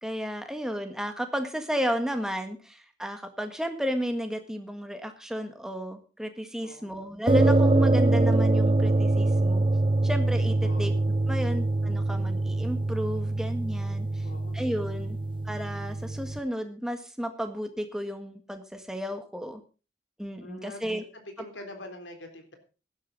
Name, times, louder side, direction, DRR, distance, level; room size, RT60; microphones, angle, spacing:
voice 1, 0.0-9.6 10.0-10.9 11.3-14.3 14.5-15.2 15.5-19.6 20.2-21.0, equal, 5° right, 6 dB, 1.6 m, -33 dB
voice 2, 6.6-6.9 10.6-10.9 14.2-14.6 20.4-22.5, left 1 dB, 85° left, 5 dB, 3.7 m, -44 dB
sound 1, 7.3-16.4, right 2 dB, 25° right, 0.7 m, -24 dB
16.5 x 11.5 x 4.0 m, 0.34 s
head